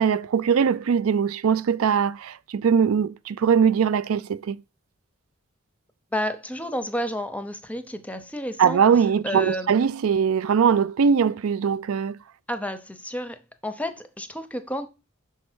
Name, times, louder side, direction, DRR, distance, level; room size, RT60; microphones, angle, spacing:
voice 1, 0.0-4.6 8.6-12.2, right 7 dB, 80° right, 0.4 m, -21 dB
voice 2, 6.1-9.8 12.5-14.9, equal, 5° left, 0.6 m, -31 dB
6.3 x 4.5 x 6.1 m
head